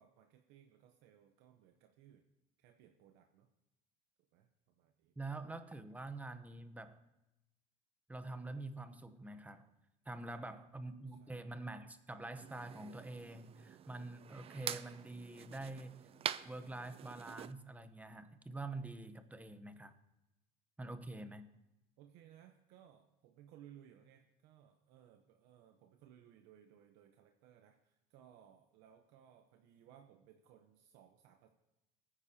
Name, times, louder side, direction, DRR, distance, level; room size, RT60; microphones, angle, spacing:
voice 1, 0.0-2.2 2.6-3.5 4.3-5.1 10.3-11.5 22.0-31.5, right 10 dB, 80° right, 5 dB, 0.9 m, -62 dB
voice 2, 5.2-7.0 8.1-9.7 10.1-15.9 16.4-19.9 20.8-21.5, right 2 dB, 10° right, 10 dB, 0.9 m, -46 dB
sound 1, 12.4-17.5, right 9 dB, 35° right, 0.4 m, -46 dB
20.0 x 9.8 x 2.9 m, 0.94 s
cardioid pair, 120°, 17 cm